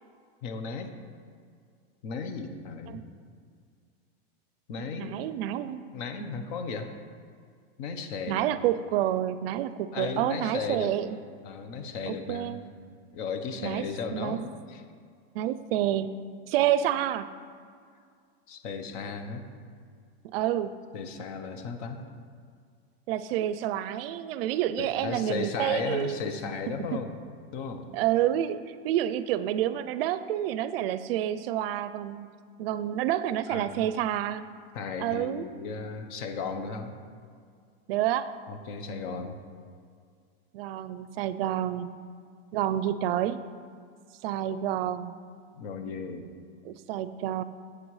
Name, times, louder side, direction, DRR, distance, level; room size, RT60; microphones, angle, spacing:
voice 1, 0.4-0.9 2.0-3.0 4.7-5.2 5.9-6.9 7.8-8.4 9.9-11.0 11.4-12.6 13.1-14.8 18.5-19.4 20.9-22.0 24.8-27.2 27.5-27.9 33.5-33.9 34.7-36.9 38.5-39.4 45.6-46.3, left 5 dB, 50° left, 7 dB, 0.9 m, -35 dB
voice 2, 4.8-5.9 6.2-6.3 8.3-11.2 12.1-12.7 13.6-14.4 15.3-16.2 16.5-17.3 20.2-20.8 23.1-26.2 26.9-27.0 27.9-32.3 32.6-34.4 35.0-35.5 37.9-38.3 40.5-41.9 42.5-43.4 44.2-45.2 46.6-47.4, right 11 dB, 65° right, 14 dB, 0.5 m, -29 dB
11.5 x 7.9 x 3.2 m, 2.1 s
supercardioid pair, 150°, 32 cm